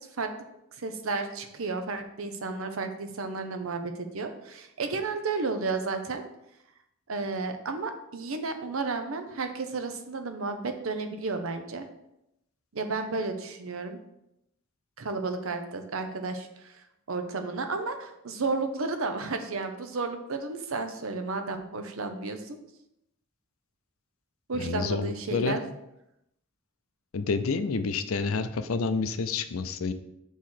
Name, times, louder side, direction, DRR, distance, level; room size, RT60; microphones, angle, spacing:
voice 1, 0.8-6.2 7.1-11.8 12.7-14.0 15.0-22.6 24.5-25.7, right 3 dB, 75° right, 7 dB, 0.8 m, -32 dB
voice 2, 24.5-25.6 27.1-29.9, left 4 dB, 75° left, 11 dB, 0.5 m, -29 dB
6.5 x 3.1 x 5.7 m, 0.84 s
head